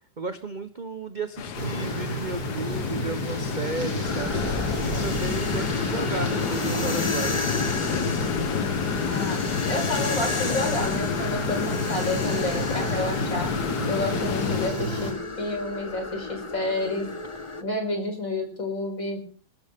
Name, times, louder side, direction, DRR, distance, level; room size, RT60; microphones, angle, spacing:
voice 1, 0.2-4.4 4.8-7.5, right 3 dB, 35° right, 10 dB, 0.7 m, -34 dB
sound 1, 1.4-14.7, left 7 dB, 60° left, 1.5 m, -30 dB
sound 2, 1.5-15.1, left 1 dB, 85° left, 5.2 m, -31 dB
sound 3, 4.0-17.6, left 3 dB, 20° left, 1.0 m, -33 dB
voice 2, 9.0-9.4 9.7-13.5 13.9-17.1 17.6-19.2, left 2 dB, 45° left, 4 dB, 5.1 m, -30 dB
23.5 x 13.5 x 3.6 m, 0.41 s
omnidirectional pair, 2.0 m